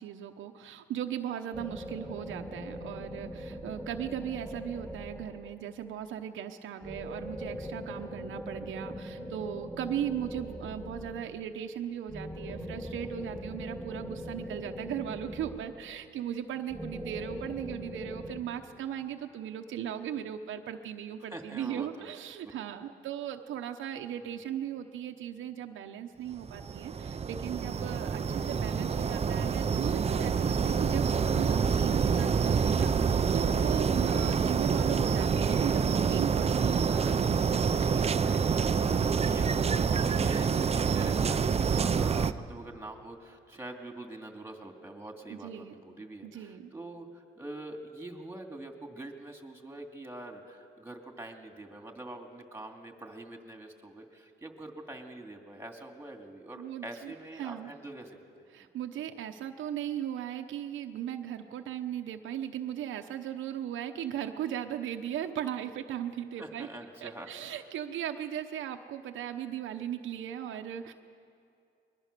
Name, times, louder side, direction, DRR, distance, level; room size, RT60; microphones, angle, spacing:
voice 1, 0.0-38.7 45.3-45.8 46.2-46.7 56.6-57.1 57.4-57.7 58.5-66.7 67.0-70.9, right 10 dB, 80° right, 5 dB, 1.0 m, -37 dB
sound 1, 1.5-5.7 6.8-11.5 12.1-16.1 16.7-18.4, equal, 5° left, 3.7 m, -41 dB
voice 2, 21.3-22.1 24.2-24.4 38.8-58.2 66.4-67.3, right 1 dB, 10° right, 4 dB, 2.6 m, -44 dB
sound 2, 26.4-42.3, right 6 dB, 30° right, 0.6 m, -27 dB
21.5 x 21.5 x 6.8 m, 2.4 s
cardioid pair, 90°, 20 cm